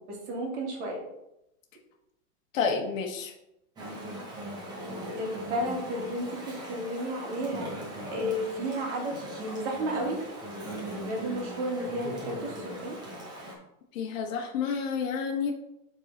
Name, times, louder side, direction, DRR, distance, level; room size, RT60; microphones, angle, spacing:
voice 1, 0.1-1.0 5.2-7.8 8.1-10.2 10.5-13.0, right 1 dB, 50° right, -1 dB, 2.4 m, -33 dB
voice 2, 2.5-3.3 13.9-15.5, left 6 dB, 60° left, 1 dB, 1.2 m, -29 dB
Chatter / Stream, 3.8-13.5, equal, 10° right, 1.0 m, -40 dB
7.7 x 3.9 x 4.1 m, 0.84 s
supercardioid pair, 170°, 45 cm